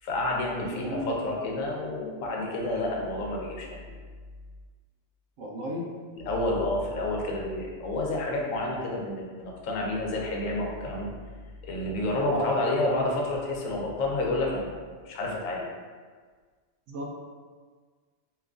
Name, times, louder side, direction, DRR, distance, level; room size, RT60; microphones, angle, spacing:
voice 1, 0.0-3.8 6.3-11.1 11.6-14.8 15.1-15.7, left 2 dB, 90° left, -1 dB, 1.0 m, -29 dB
voice 2, 0.6-1.5 5.4-5.9 12.3-12.7 16.9-17.2, equal, 85° right, -2 dB, 1.0 m, -34 dB
3.0 x 2.3 x 3.6 m, 1.5 s
omnidirectional pair, 1.3 m